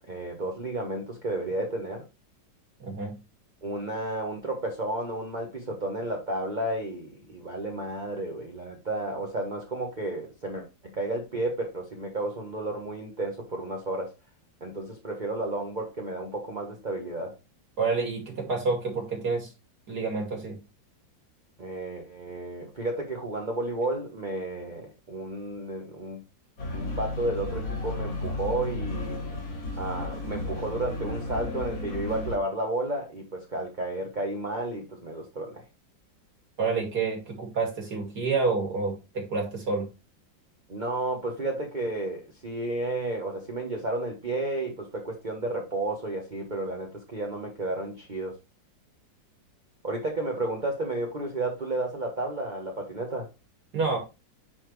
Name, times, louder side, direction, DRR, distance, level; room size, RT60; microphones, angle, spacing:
voice 1, 0.1-2.0 3.6-14.1 14.6-17.3 21.6-26.2 26.7-29.2 29.7-35.6 40.7-48.3 49.8-53.3, right 2 dB, 25° right, 0 dB, 1.3 m, -32 dB
voice 2, 2.8-3.1 17.8-19.5 19.9-20.6 36.6-39.9 53.7-54.0, right 4 dB, 55° right, 1 dB, 3.0 m, -28 dB
sound 1, 26.6-32.4, left 2 dB, 85° left, 3.7 m, -33 dB
9.9 x 4.3 x 3.2 m, 0.27 s
omnidirectional pair, 2.0 m